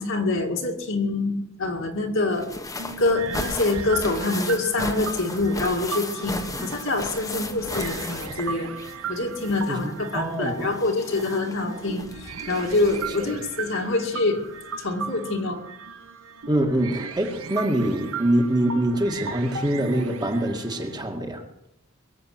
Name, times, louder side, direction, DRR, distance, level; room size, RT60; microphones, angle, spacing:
voice 1, 0.0-2.5 3.0-8.7 9.1-14.4 14.8-15.6, left 2 dB, 65° left, 1 dB, 2.3 m, -25 dB
sound 1, 2.3-9.1 9.3-13.3 14.4-14.5 14.8-14.9, left 2 dB, 15° left, 1.4 m, -35 dB
sound 2, 2.8-21.0, right 5 dB, 90° right, 1.4 m, -37 dB
voice 2, 9.7-10.7 13.2-13.3 16.5-21.4, right 1 dB, 20° right, 3 dB, 2.1 m, -25 dB
22.5 x 8.0 x 7.7 m, 0.84 s
head